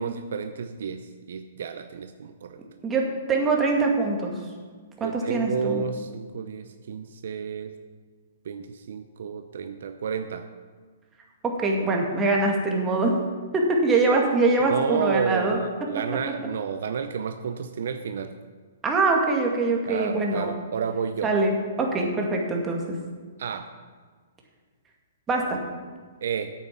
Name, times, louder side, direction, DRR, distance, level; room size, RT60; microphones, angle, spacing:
voice 1, 0.0-2.6 5.0-7.7 8.4-10.5 14.6-18.4 19.9-21.3 23.4-23.7 26.2-26.5, right 6 dB, 70° right, 9 dB, 0.6 m, -31 dB
voice 2, 2.8-4.3 5.0-5.8 11.4-13.1 13.5-15.6 18.8-20.5 21.2-23.0 25.3-25.6, right 3 dB, 15° right, 0 dB, 2.1 m, -23 dB
9.0 x 8.7 x 6.0 m, 1.5 s
hypercardioid pair, 130°, 0 cm